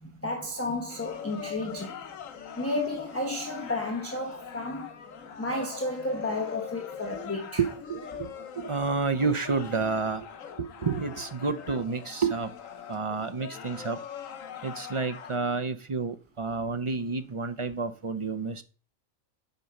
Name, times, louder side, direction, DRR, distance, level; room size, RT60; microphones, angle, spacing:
voice 1, 0.0-2.0 2.6-5.0 5.4-7.6, left 2 dB, 10° left, 0.9 m, -32 dB
sound 1, 0.9-15.4, left 7 dB, 80° left, 1.4 m, -42 dB
voice 2, 7.6-10.3 10.6-12.5 12.9-14.0 14.6-18.6, right 4 dB, 45° right, 0.4 m, -30 dB
7.9 x 5.3 x 5.8 m
omnidirectional pair, 1.4 m